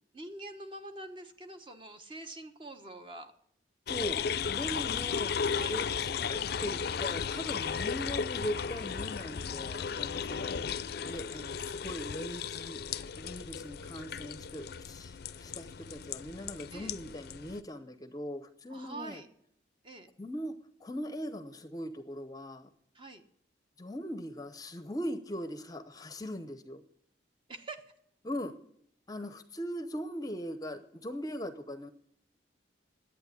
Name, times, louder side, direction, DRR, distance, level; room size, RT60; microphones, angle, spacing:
voice 1, 0.1-3.3 5.5-5.8 16.7-16.9 18.7-19.3 19.8-20.1 22.9-23.2 27.5-27.9, right 2 dB, 30° right, 6 dB, 1.1 m, -45 dB
sound 1, 3.9-17.6, left 7 dB, 55° left, 0.5 m, -35 dB
voice 2, 3.9-4.2 4.5-5.3 5.7-5.9 6.2-10.6 11.0-12.8 13.2-19.2 20.2-22.7 23.8-26.8 28.2-28.5 29.1-31.9, equal, 20° left, 10 dB, 0.7 m, -40 dB
11.0 x 8.7 x 9.6 m, 0.71 s
head